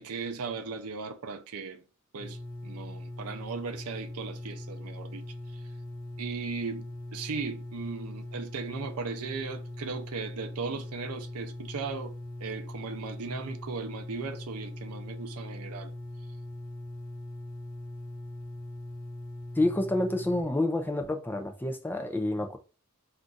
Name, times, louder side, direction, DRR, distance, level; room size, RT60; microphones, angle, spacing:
voice 1, 0.0-1.8 2.1-5.3 5.5-5.6 6.2-12.1 12.4-15.9, right 4 dB, 75° right, 0.5 m, -37 dB
sound 1, 2.2-20.4, left 1 dB, 40° left, 0.8 m, -41 dB
voice 2, 19.6-22.6, left 1 dB, 10° left, 0.3 m, -28 dB
2.5 x 2.3 x 3.8 m
head